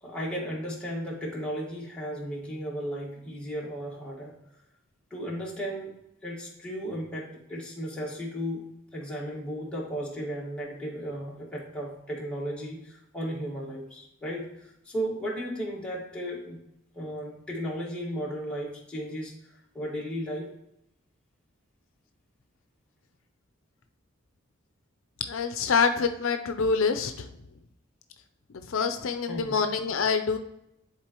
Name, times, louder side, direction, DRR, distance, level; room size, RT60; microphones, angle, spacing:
voice 1, 0.0-4.3 5.1-6.0 6.2-16.6 16.9-19.4 19.7-20.5 29.3-29.6, equal, 5° left, -5 dB, 1.8 m, -35 dB
voice 2, 25.3-27.3 28.7-30.4, left 5 dB, 75° left, 8 dB, 0.5 m, -26 dB
10.5 x 4.0 x 3.0 m, 0.83 s
head